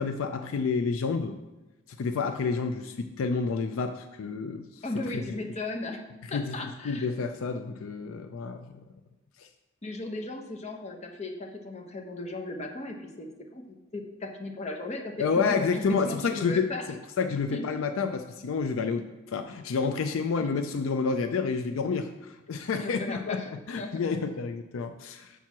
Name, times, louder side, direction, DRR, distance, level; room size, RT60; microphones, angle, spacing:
voice 1, 0.0-1.4 1.9-4.7 6.3-6.6 6.8-8.8 9.4-9.5 15.2-16.7 17.2-23.4 23.7-25.3, left 5 dB, 75° left, 8 dB, 0.4 m, -29 dB
voice 2, 4.8-6.0 6.3-7.1 9.8-13.6 13.9-16.9 17.5-17.7 20.4-20.5 22.8-23.5 23.8-24.1, left 2 dB, 35° left, 2 dB, 0.8 m, -36 dB
7.0 x 4.5 x 5.9 m, 1.1 s
head